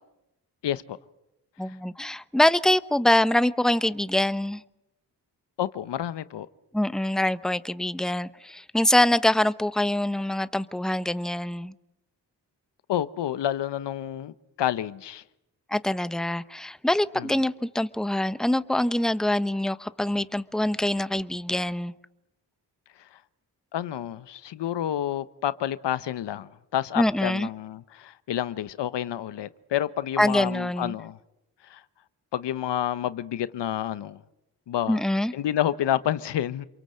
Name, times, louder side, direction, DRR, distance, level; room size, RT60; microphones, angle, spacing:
voice 1, 0.6-1.0 1.7-1.8 5.6-6.5 12.9-15.2 17.2-17.3 23.1-23.2 23.7-31.2 31.6-31.8 32.3-34.2 34.7-35.0 35.3-36.7, left 11 dB, 80° left, 1.0 m, -29 dB
voice 2, 1.6-4.6 6.7-11.7 15.7-21.9 27.0-27.5 30.2-31.0 34.9-35.3, left 1 dB, ahead, 1.0 m, -24 dB
28.0 x 23.0 x 7.7 m
cardioid pair, 55°, 41 cm